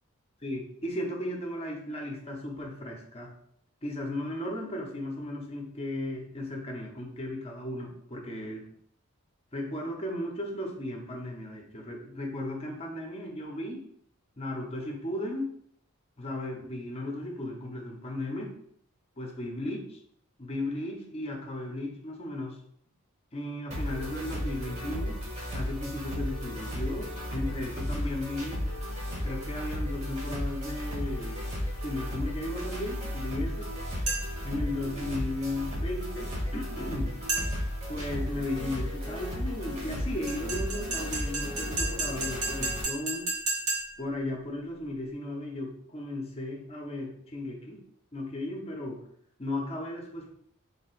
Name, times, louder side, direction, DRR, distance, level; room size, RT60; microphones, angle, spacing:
voice 1, 0.4-3.3 3.8-8.7 9.5-13.8 14.4-15.5 16.2-18.6 19.2-20.0 20.4-22.6 23.3-25.2 25.5-28.6 29.2-31.4 31.8-33.7 34.4-37.2 37.9-43.3 44.0-47.8 48.1-49.0 49.4-50.3, left 1 dB, 30° left, 1 dB, 0.8 m, -35 dB
sound 1, 23.7-42.8, equal, 30° right, 1.2 m, -34 dB
sound 2, 34.1-34.5 37.3-37.8 40.3-44.1, right 2 dB, 80° right, 1.7 m, -33 dB
3.4 x 2.9 x 4.4 m, 0.68 s
head